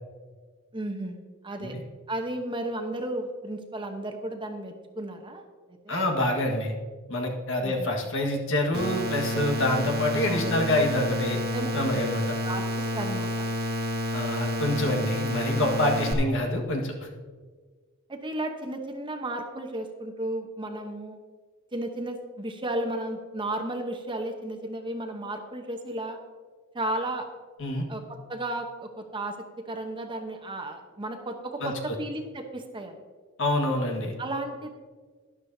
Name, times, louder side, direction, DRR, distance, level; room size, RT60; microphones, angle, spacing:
voice 1, 0.7-1.7 2.1-5.4 5.8-6.0 7.6-7.9 10.2-10.6 11.5-11.7 12.4-13.3 18.1-21.2 21.7-26.2 26.7-27.3 27.9-28.0 28.3-29.4 29.7-32.9 34.2-34.7, right 1 dB, 25° right, 4 dB, 0.9 m, -33 dB
voice 2, 5.9-6.7 7.1-11.4 11.7-12.2 14.1-17.1 27.6-27.9 31.6-32.0 33.4-34.1, left 1 dB, 60° left, 2 dB, 1.6 m, -26 dB
sound 1, 8.7-16.1, left 1 dB, 50° right, 1.4 m, -29 dB
12.5 x 11.5 x 2.7 m, 1.5 s
head